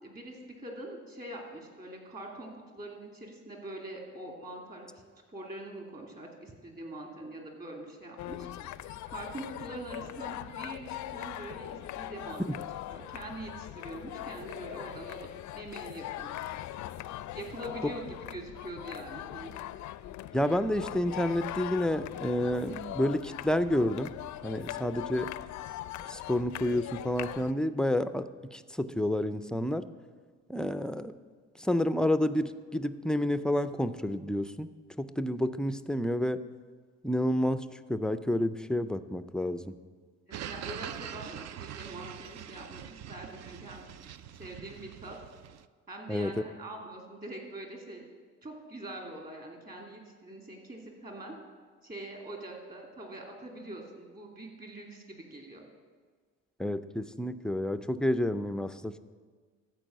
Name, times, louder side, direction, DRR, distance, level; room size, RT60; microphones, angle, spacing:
voice 1, 0.0-4.9 5.3-12.4 12.9-15.3 15.5-16.5 17.3-19.5 24.8-24.9 40.3-43.8 44.3-45.2 45.9-48.0 48.4-51.3 51.8-55.6, right 1 dB, 30° right, 0 dB, 2.6 m, -44 dB
sound 1, 8.2-27.5, left 13 dB, 70° left, 0.4 m, -41 dB
voice 2, 20.3-24.1 24.4-25.3 26.1-29.8 30.5-31.1 31.6-34.7 35.0-36.4 37.0-39.8 46.1-46.3 56.6-59.0, left 1 dB, 5° left, 12 dB, 0.3 m, -29 dB
sound 2, 40.3-45.7, right 10 dB, 60° right, 0.4 m, -43 dB
14.0 x 4.7 x 7.7 m, 1.5 s
cardioid pair, 100°, 30 cm